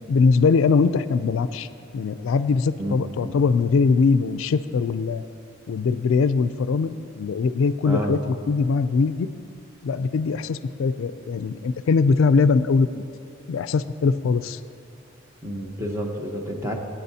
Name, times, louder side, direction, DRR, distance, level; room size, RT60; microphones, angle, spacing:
voice 1, 0.1-1.7 1.9-5.2 5.7-9.3 9.8-13.0 13.5-14.6, left 4 dB, 80° left, 13 dB, 0.3 m, -21 dB
voice 2, 7.8-8.1 15.4-16.7, equal, 15° right, 0 dB, 1.0 m, -29 dB
18.0 x 9.2 x 2.8 m, 2.4 s
head